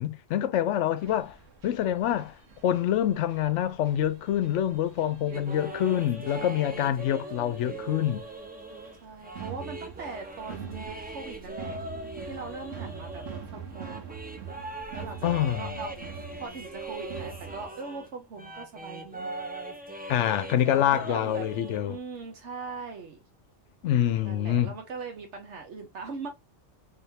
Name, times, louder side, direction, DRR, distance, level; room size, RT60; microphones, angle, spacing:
voice 1, 0.0-1.4 1.6-2.3 2.6-8.2 15.2-15.8 20.1-22.0 23.8-24.7, left 11 dB, 75° left, 0.9 m, -26 dB
sound 1, 1.0-17.7, right 7 dB, 85° right, 1.3 m, -45 dB
voice 2, 5.2-6.0 6.4-7.1 9.0-11.8 12.3-14.2 14.9-15.9 16.4-19.4 20.6-23.2 24.2-26.3, right 4 dB, 70° right, 1.2 m, -41 dB
sound 2, 5.3-18.1 18.4-21.8, right 2 dB, 10° right, 0.5 m, -41 dB
3.7 x 3.5 x 2.7 m
omnidirectional pair, 1.3 m